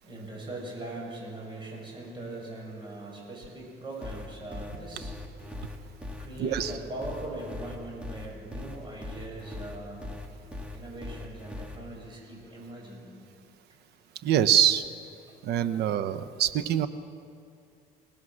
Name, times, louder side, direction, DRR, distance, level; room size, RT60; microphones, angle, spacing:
voice 1, 0.0-5.8 6.2-10.1 10.7-13.1, right 2 dB, 30° right, -2 dB, 7.7 m, -41 dB
sound 1, 4.0-11.8, left 2 dB, 5° right, 2.8 m, -39 dB
voice 2, 6.4-6.7 14.2-14.8 15.4-16.9, right 10 dB, 75° right, 12 dB, 1.0 m, -24 dB
27.0 x 18.0 x 6.5 m, 2.5 s
cardioid pair, 110°, 17 cm